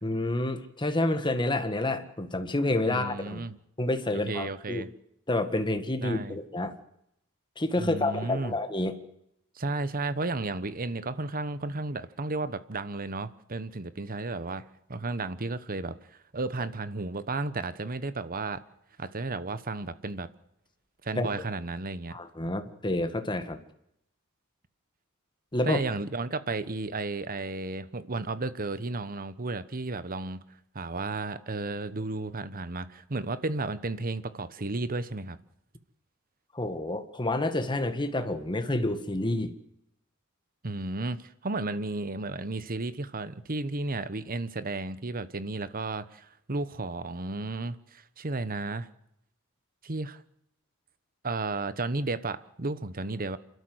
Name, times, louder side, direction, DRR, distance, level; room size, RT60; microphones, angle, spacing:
voice 1, 0.0-3.4 3.8-4.8 5.3-6.7 7.6-8.9 21.2-21.3 22.1-23.6 25.5-25.8 36.5-39.5, left 2 dB, 20° left, 7 dB, 1.8 m, -29 dB
voice 2, 2.9-3.6 4.1-4.9 6.0-6.4 7.8-8.6 9.5-15.9 16.3-18.6 19.0-20.3 21.0-22.2 25.6-30.4 30.7-35.4 40.6-48.9 49.8-50.2 51.2-53.4, right 3 dB, 45° right, 14 dB, 1.1 m, -33 dB
28.0 x 13.0 x 8.0 m, 0.78 s
head